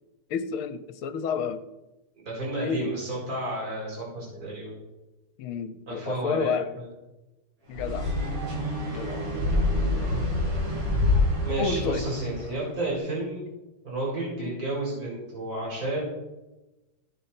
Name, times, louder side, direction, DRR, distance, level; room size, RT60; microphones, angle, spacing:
voice 1, 0.3-1.6 2.6-2.9 5.4-6.7 7.7-8.1 8.9-9.5 11.6-12.1 14.4-14.5, left 6 dB, 75° left, 11 dB, 1.6 m, -30 dB
voice 2, 2.1-4.8 5.9-6.8 10.7-10.8 11.4-13.5 13.8-16.0, right 2 dB, 40° right, -5 dB, 5.1 m, -31 dB
sound 1, 7.7-12.6, left 2 dB, 75° right, 3.4 m, -27 dB
16.0 x 7.0 x 4.4 m, 1.0 s
omnidirectional pair, 2.4 m